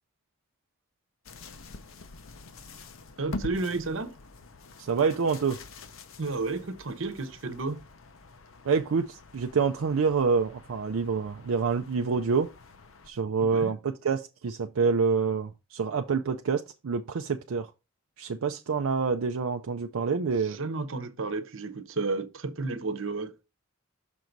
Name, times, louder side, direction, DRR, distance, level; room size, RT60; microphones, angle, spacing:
sound 1, 1.2-13.1, left 3 dB, 70° left, 0.7 m, -45 dB
voice 1, 3.2-4.1 6.2-7.8 13.5-13.7 20.4-23.3, right 3 dB, 65° right, 0.9 m, -32 dB
voice 2, 4.8-5.6 8.6-12.5 13.1-17.7 18.2-20.6, right 5 dB, 80° right, 0.5 m, -27 dB
6.1 x 3.9 x 4.6 m
head